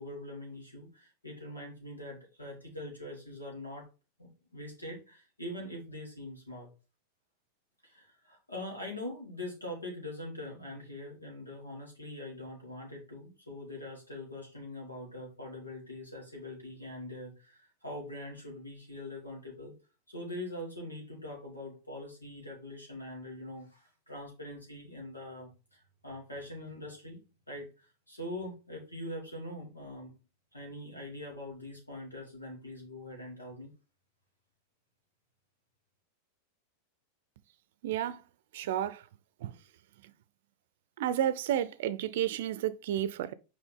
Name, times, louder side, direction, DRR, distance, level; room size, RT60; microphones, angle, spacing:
voice 1, 0.0-3.9 4.2-6.7 7.8-19.7 20.1-30.2 30.5-33.7, left 1 dB, 90° left, 2.9 m, -43 dB
voice 2, 37.8-38.2 38.5-39.0 39.4-39.6 41.0-43.3, right 11 dB, 60° right, 0.5 m, -31 dB
6.1 x 5.0 x 3.7 m
figure-of-eight pair, 90°, 0 cm